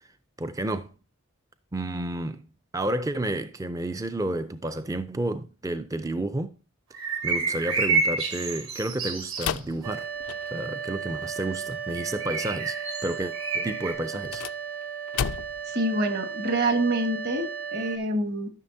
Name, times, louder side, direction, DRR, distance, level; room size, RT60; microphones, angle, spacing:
voice 1, 0.4-0.9 1.7-6.6 7.2-10.1 10.5-12.8 13.0-14.5, right 1 dB, 15° right, 0.4 m, -31 dB
sound 1, 6.9-9.6 12.0-13.9, right 4 dB, 70° right, 2.6 m, -29 dB
sound 2, 9.4-10.8 14.1-15.7, left 8 dB, 80° left, 0.4 m, -33 dB
sound 3, 9.8-18.0, right 7 dB, 85° right, 1.1 m, -35 dB
voice 2, 15.7-18.5, right 1 dB, 50° right, 1.4 m, -26 dB
13.0 x 6.3 x 2.7 m
head